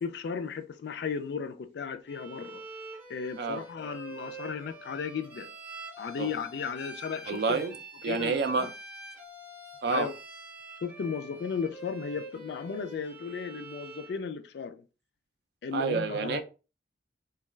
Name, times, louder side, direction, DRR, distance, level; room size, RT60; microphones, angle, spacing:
voice 1, 0.0-2.6 3.1-5.5 6.0-7.7 8.1-8.7 9.9-10.2 10.8-14.8 15.6-16.4, left 6 dB, 65° left, 0.3 m, -35 dB
Bowed string instrument, 2.1-14.2, right 3 dB, 10° right, 0.6 m, -46 dB
voice 2, 7.3-7.7 8.0-8.7 9.8-10.1 15.7-16.4, right 4 dB, 60° right, 0.3 m, -28 dB
2.3 x 2.2 x 3.1 m
head